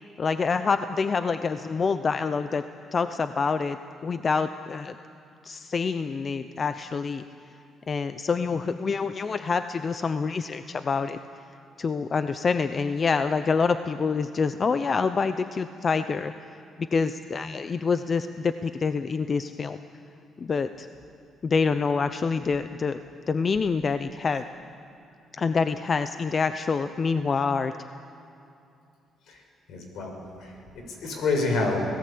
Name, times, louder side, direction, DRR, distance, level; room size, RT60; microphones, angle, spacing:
voice 1, 0.2-2.6 2.9-3.8 4.0-5.0 5.4-7.2 7.9-11.2 11.8-16.3 16.9-19.8 20.4-20.9 21.4-23.0 23.3-24.4 25.3-27.7, left 5 dB, 40° left, 10 dB, 0.7 m, -26 dB
voice 2, 29.7-30.1 30.4-31.8, left 3 dB, 75° left, 3 dB, 5.8 m, -28 dB
26.5 x 18.0 x 8.6 m, 2.6 s
cardioid pair, 90°, 0 cm